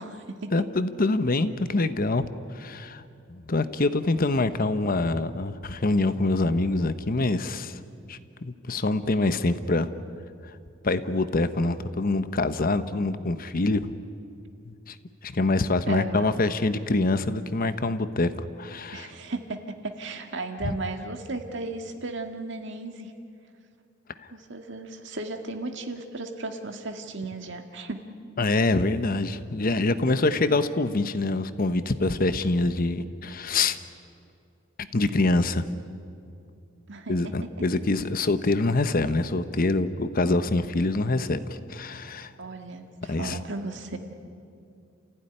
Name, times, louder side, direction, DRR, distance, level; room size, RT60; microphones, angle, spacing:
voice 1, 0.0-0.7 15.9-16.4 18.9-23.1 24.3-28.0 36.9-37.1 37.4-37.5 42.4-44.0, right 2 dB, 65° right, 5 dB, 1.9 m, -35 dB
voice 2, 0.5-2.3 2.5-3.0 3.3-7.8 8.1-9.9 10.4-10.5 10.8-13.9 14.7-15.0 15.2-19.1 20.6-20.8 24.2-24.3 28.4-33.8 34.9-35.6 37.1-42.3 43.1-43.4, left 2 dB, 45° left, 11 dB, 1.0 m, -25 dB
29.5 x 15.5 x 10.0 m, 2.5 s
head